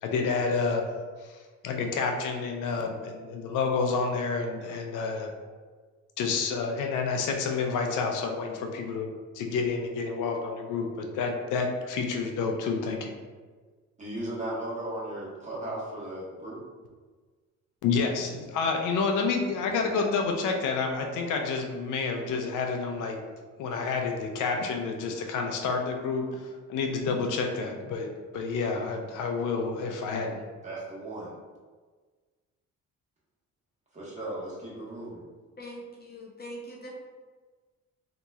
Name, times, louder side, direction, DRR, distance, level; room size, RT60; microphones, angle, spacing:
voice 1, 0.0-0.8 1.2-1.4 1.6-5.3 6.2-9.1 9.3-13.1 17.8-23.2 23.6-28.1 28.3-30.4, left 4 dB, 85° left, 3 dB, 0.6 m, -29 dB
voice 2, 14.0-16.6 19.7-20.0 30.6-31.3 33.9-35.2, right 1 dB, 25° right, -6 dB, 1.3 m, -36 dB
voice 3, 35.6-36.9, equal, 35° left, -2 dB, 0.7 m, -42 dB
4.0 x 2.9 x 2.3 m, 1.4 s
cardioid pair, 90°, 30 cm